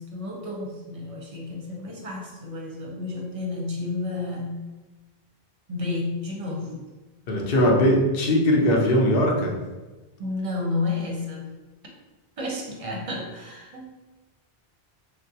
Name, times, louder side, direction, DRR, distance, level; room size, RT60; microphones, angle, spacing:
voice 1, 0.0-4.6 5.7-6.9 10.2-11.5 12.4-13.9, left 3 dB, 40° right, -1 dB, 0.6 m, -31 dB
voice 2, 7.3-9.5, equal, 65° left, 0 dB, 0.8 m, -20 dB
3.1 x 2.5 x 2.7 m, 1.2 s
omnidirectional pair, 1.0 m